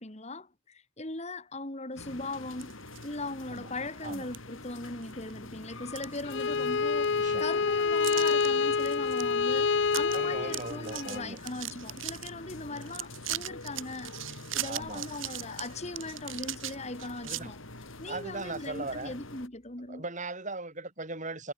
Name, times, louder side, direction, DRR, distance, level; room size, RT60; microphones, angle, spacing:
voice 1, 0.0-17.6 18.0-20.0, left 2 dB, 35° left, 3.0 m, -39 dB
sound 1, 2.0-19.5, left 2 dB, 90° left, 5.0 m, -46 dB
sound 2, 2.5-3.1 3.6-3.7 4.3-4.4 4.9-5.3 5.7-6.7 7.0-7.1 8.0-8.5 8.8-9.2 9.5-9.6 9.9-10.2 10.4-12.3 12.8-17.4, right 13 dB, 80° right, 4.0 m, -38 dB
Bowed string instrument, 6.3-11.2, left 5 dB, 60° left, 0.6 m, -27 dB
voice 2, 7.1-7.4 10.1-11.4 14.6-15.1 17.2-17.5 18.0-19.1 19.9-21.5, right 2 dB, 40° right, 6.9 m, -38 dB
head